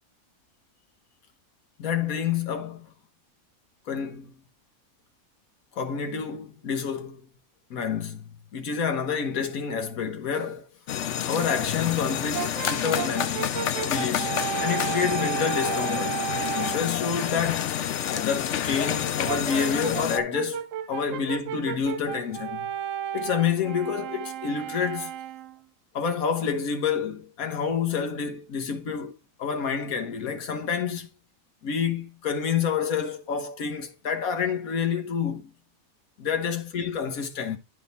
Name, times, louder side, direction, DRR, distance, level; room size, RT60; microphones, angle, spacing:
voice 1, 1.8-2.9 3.9-4.3 5.8-7.2 7.7-10.7 11.3-13.5 13.8-16.2 16.5-22.7 23.1-25.1 25.9-29.1 29.4-31.1 31.6-35.5 36.2-37.6, left 7 dB, 80° left, 1.4 m, -28 dB
sound 1, 10.9-20.2, left 10 dB, 65° left, 0.9 m, -29 dB
Brass instrument, 12.3-16.9 19.3-25.6, right 10 dB, 70° right, 0.9 m, -33 dB
11.0 x 3.7 x 4.1 m
omnidirectional pair, 1.5 m